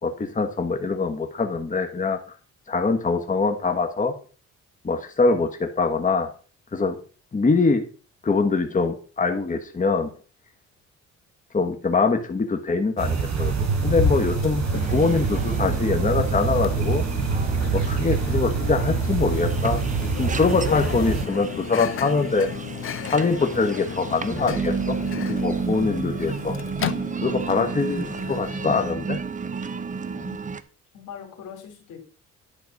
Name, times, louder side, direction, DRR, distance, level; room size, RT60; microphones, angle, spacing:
voice 1, 0.0-2.2 2.7-4.1 4.8-6.3 6.7-6.9 7.3-7.8 8.2-10.1 11.5-14.6 14.9-17.0 17.7-22.5 23.0-25.0 25.3-26.5 27.2-29.2, left 4 dB, 25° left, 5 dB, 1.3 m, -23 dB
sound 1, 13.0-21.2, right 5 dB, 60° right, 3.4 m, -25 dB
Microwave oven, 13.9-28.9, left 10 dB, 45° left, 0.6 m, -34 dB
sound 2, 14.7-30.6, right 5 dB, 25° right, 0.8 m, -32 dB
voice 2, 30.9-32.0, left 8 dB, 80° left, 5 dB, 2.8 m, -41 dB
11.0 x 4.2 x 6.4 m, 0.39 s
cardioid pair, 90°, 30 cm